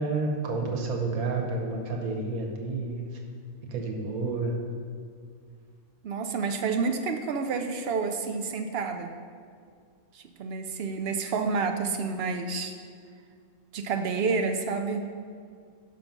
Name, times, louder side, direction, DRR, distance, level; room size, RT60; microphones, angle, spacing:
voice 1, 0.0-3.0 3.7-4.5, right 3 dB, 85° right, 1 dB, 1.4 m, -30 dB
voice 2, 6.0-9.1 10.1-12.7 13.7-15.1, right 4 dB, 65° right, 6 dB, 0.6 m, -29 dB
6.2 x 5.9 x 5.3 m, 2.1 s
omnidirectional pair, 1.5 m